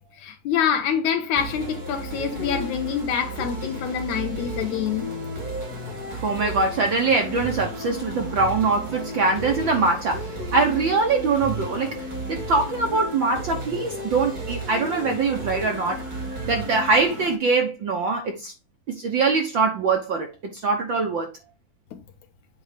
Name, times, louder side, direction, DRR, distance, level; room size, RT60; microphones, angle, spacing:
voice 1, 0.2-5.1, left 8 dB, 75° left, 2.7 m, -26 dB
sound 1, 1.4-17.4, right 1 dB, 40° right, 1.7 m, -33 dB
voice 2, 6.1-16.0 16.4-18.5 18.9-20.3 20.6-21.3, right 4 dB, 75° right, 1.1 m, -23 dB
8.8 x 3.2 x 5.0 m
omnidirectional pair, 3.5 m